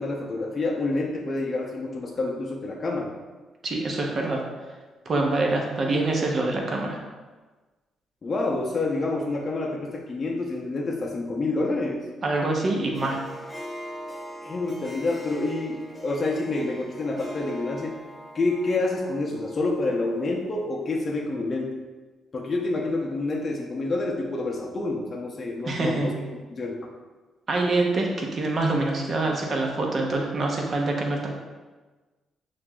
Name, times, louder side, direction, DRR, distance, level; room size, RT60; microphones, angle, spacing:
voice 1, 0.0-3.1 8.2-12.1 14.4-18.0 18.3-21.7 22.3-26.1 26.5-26.9, left 2 dB, 35° left, 0 dB, 0.5 m, -28 dB
voice 2, 3.6-4.4 5.0-7.0 12.2-13.2 25.6-26.1 27.5-31.3, right 2 dB, 45° right, 0 dB, 0.7 m, -25 dB
Harp, 12.9-20.5, equal, 10° left, 0.8 m, -41 dB
5.9 x 2.5 x 2.3 m, 1.3 s
cardioid pair, 90°, 0 cm